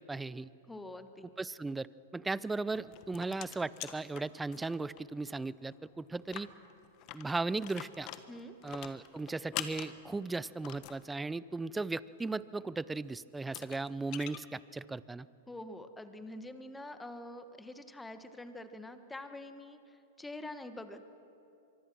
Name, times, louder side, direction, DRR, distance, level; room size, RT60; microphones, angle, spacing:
voice 1, 0.1-0.5 1.4-1.9 2.1-6.5 7.1-8.1 8.6-15.3, right 3 dB, 10° right, 19 dB, 0.5 m, -37 dB
voice 2, 0.7-1.3 8.3-8.5 15.5-19.8 20.2-21.0, left 1 dB, 10° left, 9 dB, 1.4 m, -45 dB
sound 1, 2.7-5.0 5.3-5.4 5.7-5.8 6.2-11.0 12.8-12.9 13.4-14.4, left 14 dB, 45° left, 1.3 m, -45 dB
24.0 x 24.0 x 6.2 m, 2.8 s
hypercardioid pair, 115°, 0 cm